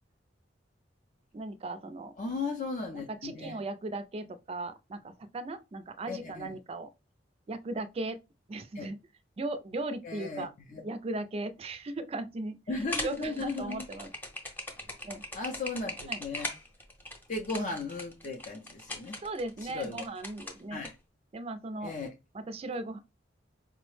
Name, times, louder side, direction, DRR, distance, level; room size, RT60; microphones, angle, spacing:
voice 1, 1.3-2.1 2.9-6.9 7.5-8.2 8.5-9.0 9.4-10.5 10.8-12.6 13.0-14.1 15.0-15.2 16.1-16.2 19.2-20.8 21.3-21.9 22.3-23.0, right 2 dB, 35° right, 0.3 m, -37 dB
voice 2, 2.2-3.6 6.1-6.5 8.7-8.9 10.0-10.8 12.7-13.9 15.3-16.5 17.3-19.2 19.6-20.0 20.7-20.9 21.8-22.1, left 3 dB, 45° left, 0.5 m, -36 dB
sound 1, 12.8-20.9, left 1 dB, 10° left, 0.7 m, -40 dB
4.6 x 2.0 x 3.1 m
head